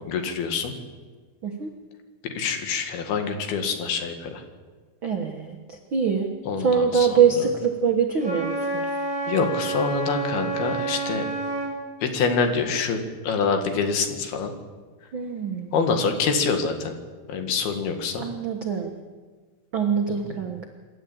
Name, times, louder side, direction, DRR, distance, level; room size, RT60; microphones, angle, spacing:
voice 1, 0.1-0.7 2.2-4.4 6.5-7.1 9.3-11.2 12.0-13.0 13.2-14.5 15.7-16.9 17.3-18.2 20.3-20.4, left 5 dB, 75° left, 6 dB, 3.8 m, -25 dB
voice 2, 5.0-6.3 6.6-8.9 15.1-15.8 18.2-18.9 19.7-20.7, right 6 dB, 80° right, 3 dB, 1.1 m, -24 dB
Wind instrument woodwind instrument, 8.2-11.8, right 3 dB, ahead, 6.5 m, -29 dB
27.0 x 12.5 x 8.7 m, 1.4 s
omnidirectional pair, 4.6 m